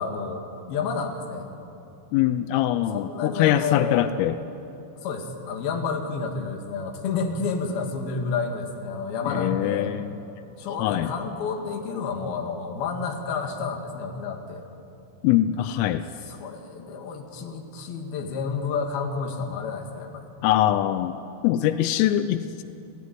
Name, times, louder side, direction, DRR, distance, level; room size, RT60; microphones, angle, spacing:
voice 1, 0.0-1.5 2.9-4.1 5.0-9.9 10.6-14.7 16.2-20.3, left 5 dB, 55° left, 3 dB, 3.6 m, -30 dB
voice 2, 2.1-4.4 9.3-10.2 10.8-11.1 15.2-16.1 20.4-21.2 21.4-22.6, left 12 dB, 85° left, 10 dB, 3.4 m, -23 dB
29.0 x 17.0 x 9.5 m, 2.8 s
omnidirectional pair, 5.8 m